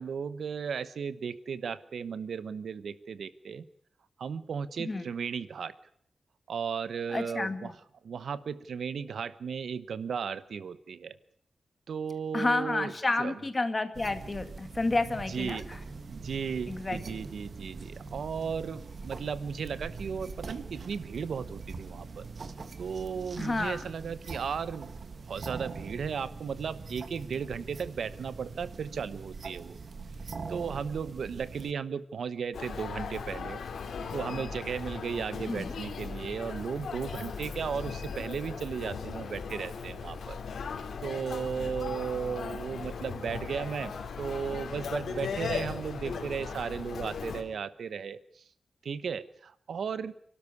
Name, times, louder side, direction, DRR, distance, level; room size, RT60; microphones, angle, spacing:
voice 1, 0.0-3.6 4.2-5.7 6.5-7.7 8.0-11.2 11.9-12.9 13.2-13.4 15.3-15.6 16.1-22.3 22.8-24.9 25.3-29.8 30.5-33.6 34.1-40.4 41.0-43.9 44.2-48.4 48.8-50.1, right 6 dB, 70° right, 15 dB, 1.1 m, -35 dB
voice 2, 7.1-7.7 12.3-15.8 16.7-17.0 23.4-23.8 35.4-35.7, left 2 dB, 25° left, 9 dB, 2.0 m, -30 dB
sound 1, 13.9-31.7, right 4 dB, 45° right, 1.6 m, -43 dB
Human voice, 32.5-47.4, left 5 dB, 80° left, 3.4 m, -38 dB
28.5 x 13.0 x 9.8 m, 0.65 s
wide cardioid pair, 155°, 0 cm